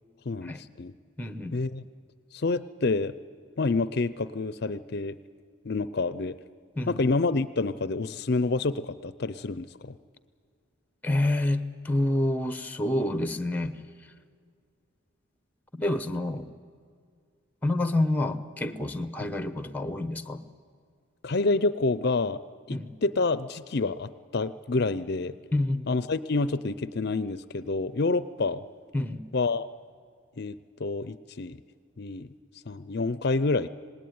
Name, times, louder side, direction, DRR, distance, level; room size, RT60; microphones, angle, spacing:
voice 1, 0.3-0.9 1.5-1.8 2.3-3.1 3.6-5.2 5.6-6.4 6.9-10.0 21.2-22.4 22.7-25.4 25.9-28.6 29.3-29.7 30.4-31.6 32.0-32.3 32.7-33.7, left 3 dB, 55° left, 15 dB, 0.6 m, -28 dB
voice 2, 1.2-1.6 6.8-7.0 11.0-13.8 15.7-16.5 17.6-20.4 22.7-22.9 25.5-25.9 28.9-29.2, left 1 dB, 10° left, 11 dB, 0.9 m, -28 dB
26.5 x 19.0 x 9.5 m, 2.1 s
head